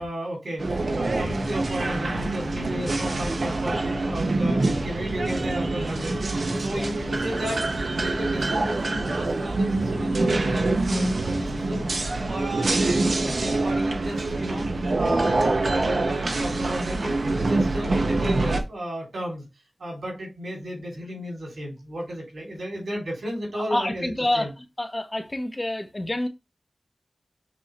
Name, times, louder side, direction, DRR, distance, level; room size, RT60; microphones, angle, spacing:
voice 1, 0.0-11.9 12.3-14.7 15.0-19.5 19.8-24.5, equal, 90° right, 2.8 m, -34 dB
sound 1, 0.6-18.6, right 2 dB, 65° right, 0.8 m, -25 dB
voice 2, 23.5-24.5 24.8-26.3, left 1 dB, 30° left, 0.9 m, -27 dB
6.1 x 2.7 x 3.0 m
cardioid pair, 45°, 0 cm